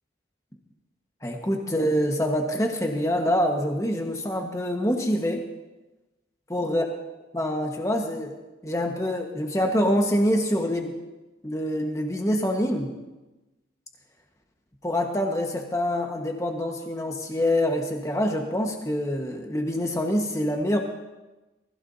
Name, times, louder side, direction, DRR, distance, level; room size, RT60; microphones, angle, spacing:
voice 1, 1.2-5.4 6.5-6.8 7.3-8.4 8.6-10.9 11.4-12.9 14.8-20.8, equal, 15° left, 2 dB, 1.4 m, -25 dB
20.0 x 15.0 x 2.8 m, 1.1 s
head